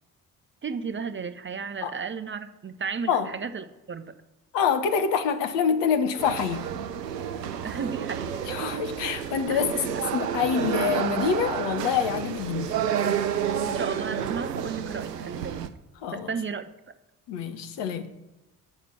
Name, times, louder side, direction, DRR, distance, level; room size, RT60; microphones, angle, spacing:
voice 1, 0.6-4.1 7.6-8.4 9.5-9.7 13.6-15.7 16.1-16.7, right 5 dB, 25° right, 0.7 m, -34 dB
voice 2, 4.5-6.6 8.5-9.7 10.1-12.8 16.0-16.3 17.3-18.1, left 7 dB, 60° left, 1.0 m, -26 dB
sound 1, 6.2-15.7, right 8 dB, 90° right, 0.5 m, -30 dB
5.9 x 5.8 x 7.1 m
figure-of-eight pair, 40°, 46 cm